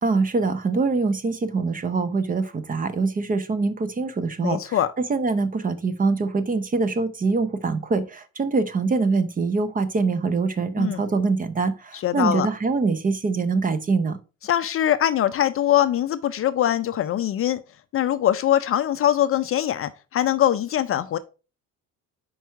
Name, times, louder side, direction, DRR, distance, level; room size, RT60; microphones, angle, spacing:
voice 1, 0.0-14.2, right 4 dB, 25° right, 0.6 m, -24 dB
voice 2, 4.4-4.9 10.8-11.0 11.9-12.5 14.4-17.6 17.9-21.2, left 11 dB, 40° left, 0.4 m, -22 dB
6.0 x 4.7 x 4.5 m
cardioid pair, 130°, 35 cm